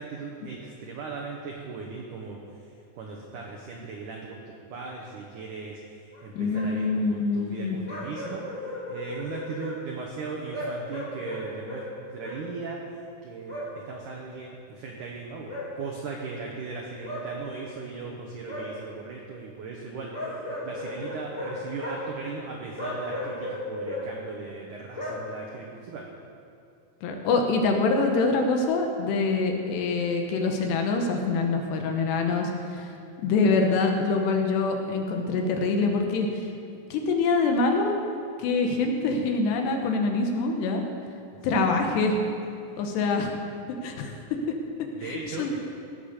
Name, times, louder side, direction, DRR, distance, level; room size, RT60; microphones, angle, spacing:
voice 1, 0.0-2.4 2.9-11.8 12.1-12.8 13.2-26.0 41.3-41.6 44.9-45.6, right 4 dB, 90° right, -1 dB, 1.7 m, -38 dB
sound 1, 6.1-6.2 6.5-6.7 7.9-9.7 10.5-11.9 12.2-12.4 13.5-13.7 15.5-15.7 17.0-17.2 18.4-18.7 20.1-21.5 21.8-22.0 22.8-24.0 24.9-25.2, left 1 dB, 20° left, 2.4 m, -35 dB
voice 2, 6.3-7.8 27.0-32.9 33.2-36.5 36.9-38.0 38.4-40.8 41.4-42.2 42.8-43.3 43.8-44.4 45.0-45.5, left 3 dB, 75° left, 3 dB, 3.0 m, -25 dB
17.0 x 7.4 x 6.7 m, 2.5 s
omnidirectional pair, 5.4 m